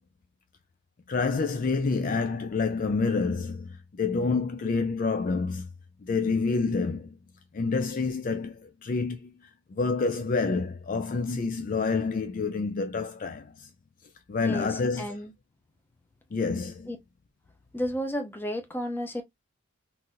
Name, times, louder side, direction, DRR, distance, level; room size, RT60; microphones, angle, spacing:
voice 1, 1.1-5.7 6.0-7.1 7.5-8.6 8.8-9.3 9.8-13.5 14.3-15.0 16.3-16.9, left 4 dB, 40° left, 0.4 m, -28 dB
voice 2, 14.4-15.3 16.9-17.0 17.7-19.2, equal, 10° left, 0.7 m, -32 dB
3.9 x 2.7 x 2.4 m
head